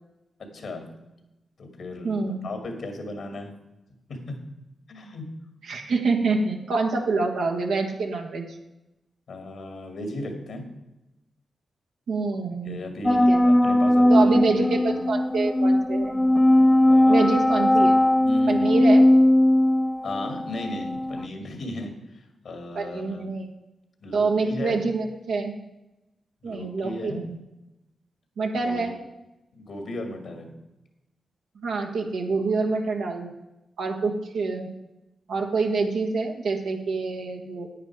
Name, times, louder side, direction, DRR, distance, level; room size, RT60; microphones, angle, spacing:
voice 1, 0.4-1.0 1.6-3.5 4.1-4.4 4.9-5.3 9.3-10.7 12.6-15.1 16.9-17.3 18.2-18.8 20.0-23.3 24.0-24.9 26.4-27.3 28.5-28.9 29.5-30.5, left 1 dB, 75° left, 5 dB, 2.2 m, -36 dB
voice 2, 2.0-2.5 5.6-8.5 12.1-12.8 13.1-13.4 14.1-16.2 17.1-17.9 18.5-19.0 22.7-23.5 24.1-25.5 26.4-27.4 28.4-28.9 31.6-33.3 33.8-34.7 35.3-37.7, right 4 dB, 80° right, 1 dB, 1.5 m, -26 dB
sound 1, 13.1-21.3, left 1 dB, 15° left, 0.6 m, -19 dB
9.5 x 9.3 x 4.7 m, 0.94 s
supercardioid pair, 40°, 0 cm